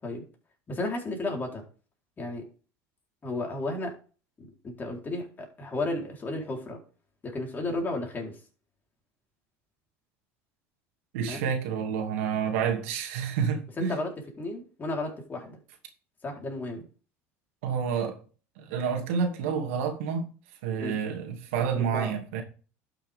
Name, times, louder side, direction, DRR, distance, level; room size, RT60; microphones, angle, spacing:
voice 1, 0.7-1.6 2.2-2.4 3.2-3.9 4.4-6.8 7.2-8.3 11.3-11.4 13.8-14.1 14.4-15.6 16.2-16.9 20.8-21.0 21.8-22.1, left 2 dB, 25° left, 4.0 m, -33 dB
voice 2, 11.1-14.0 17.6-18.2 18.6-20.3 20.6-22.4, right 7 dB, 85° right, 2.5 m, -29 dB
11.5 x 6.6 x 3.6 m
supercardioid pair, 105°, 7 cm